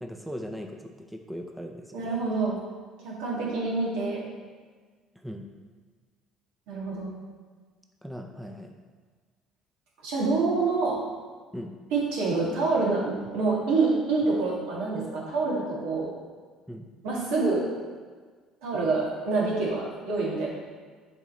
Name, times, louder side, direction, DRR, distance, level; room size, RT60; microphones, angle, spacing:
voice 1, 0.0-2.1 5.2-5.5 8.0-8.7 11.5-11.7 16.7-16.9, equal, 5° right, 3 dB, 0.6 m, -39 dB
voice 2, 1.9-2.6 3.0-4.3 6.7-7.1 10.0-11.0 11.9-16.1 17.0-17.6 18.6-20.5, right 3 dB, 80° right, -4 dB, 1.9 m, -26 dB
7.0 x 3.7 x 4.3 m, 1.5 s
supercardioid pair, 85°, 0 cm